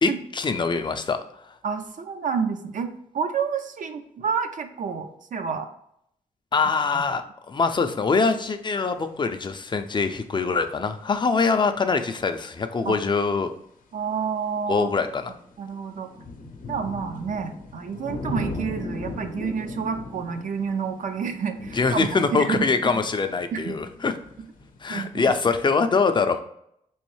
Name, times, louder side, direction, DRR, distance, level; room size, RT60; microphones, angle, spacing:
voice 1, 0.0-1.2 6.5-13.5 14.7-15.3 21.7-24.1 24.8-26.4, left 4 dB, 35° left, 8 dB, 0.4 m, -23 dB
voice 2, 1.6-2.9 3.1-5.7 6.9-7.0 12.9-13.0 13.9-14.9 15.6-16.1 16.7-22.7 23.5-23.8 24.9-25.2, right 6 dB, 70° right, 7 dB, 0.5 m, -29 dB
sound 1, 8.6-8.7 14.4-25.4, left 2 dB, 80° left, 0.6 m, -38 dB
3.6 x 3.1 x 3.1 m, 0.73 s
cardioid pair, 90°, 14 cm